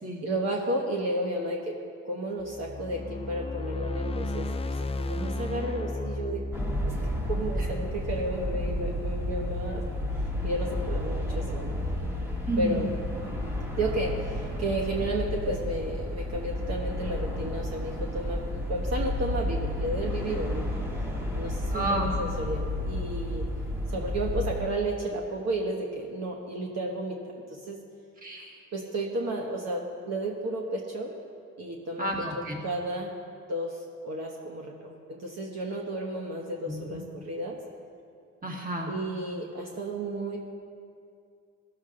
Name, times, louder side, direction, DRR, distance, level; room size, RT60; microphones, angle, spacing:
voice 1, 0.2-1.8 2.0-6.4 6.8-9.8 10.4-11.9 12.6-12.9 13.8-20.7 21.3-23.5 23.9-27.2 27.5-27.8 28.7-31.1 31.6-32.1 32.6-33.1 33.5-37.6 38.9-40.4, right 1 dB, 60° right, 0 dB, 1.3 m, -32 dB
sound 1, 2.4-8.6, left 2 dB, 20° left, 0.5 m, -34 dB
sound 2, 6.5-24.6, left 1 dB, 5° right, 1.9 m, -31 dB
voice 2, 12.5-12.9 21.7-22.2 28.2-28.7 32.0-32.6 36.6-37.0 38.4-38.9, right 1 dB, 30° right, 0 dB, 1.9 m, -31 dB
17.0 x 7.2 x 3.8 m, 2.3 s
cardioid pair, 90°, 30 cm